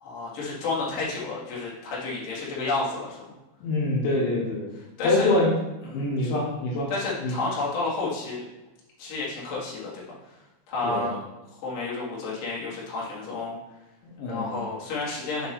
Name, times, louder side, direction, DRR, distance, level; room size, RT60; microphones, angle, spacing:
voice 1, 0.0-3.2 5.0-5.3 5.9-6.4 6.9-8.4 9.0-10.0 10.7-11.2 11.6-13.6 14.3-15.5, left 3 dB, 55° left, -6 dB, 2.6 m, -31 dB
voice 2, 3.6-4.7 5.0-5.6 5.9-6.9 7.2-7.4 10.8-11.1 14.0-14.5, left 2 dB, 75° left, -4 dB, 3.3 m, -25 dB
7.0 x 5.8 x 3.3 m, 0.99 s
omnidirectional pair, 5.8 m